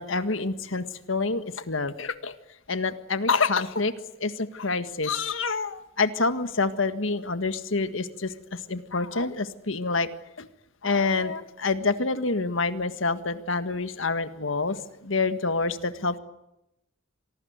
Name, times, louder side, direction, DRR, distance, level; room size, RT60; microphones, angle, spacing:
voice 1, 0.0-2.4 2.7-3.9 4.2-10.1 10.4-10.5 10.8-16.2, left 3 dB, 70° left, 11 dB, 1.7 m, -27 dB
26.5 x 19.0 x 9.5 m, 0.87 s
head